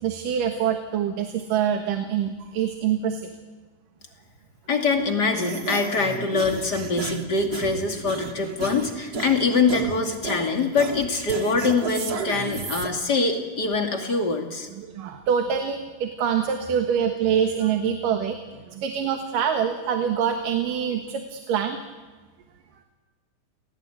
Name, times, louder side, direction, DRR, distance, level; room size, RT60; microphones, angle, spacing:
voice 1, 0.0-3.2 14.8-18.4 18.7-21.8, right 8 dB, 75° right, 5 dB, 3.1 m, -25 dB
voice 2, 4.7-14.7, left 4 dB, 30° left, 3 dB, 2.6 m, -24 dB
sound 1, 5.3-12.9, right 4 dB, 45° right, 1.3 m, -33 dB
29.5 x 18.5 x 9.4 m, 1.3 s
omnidirectional pair, 3.9 m